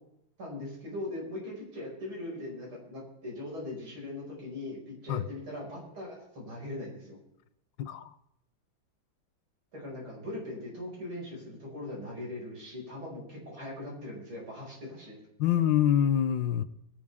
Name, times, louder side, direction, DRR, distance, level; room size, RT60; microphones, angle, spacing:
voice 1, 0.4-7.2 9.7-15.2, left 1 dB, 85° right, -3 dB, 6.4 m, -40 dB
voice 2, 7.8-8.1 15.4-16.6, left 10 dB, 70° left, 13 dB, 1.4 m, -25 dB
22.0 x 11.5 x 3.6 m, 0.82 s
omnidirectional pair, 2.2 m